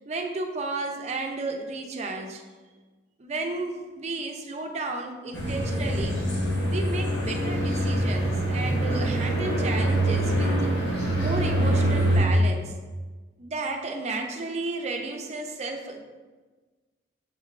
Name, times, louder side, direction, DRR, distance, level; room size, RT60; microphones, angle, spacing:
voice 1, 0.1-2.4 3.2-6.2 6.6-12.7 13.4-16.0, right 3 dB, 40° right, 3 dB, 0.5 m, -33 dB
sound 1, 5.3-12.2, right 1 dB, 85° left, 1.1 m, -25 dB
6.5 x 3.2 x 2.4 m, 1.3 s
head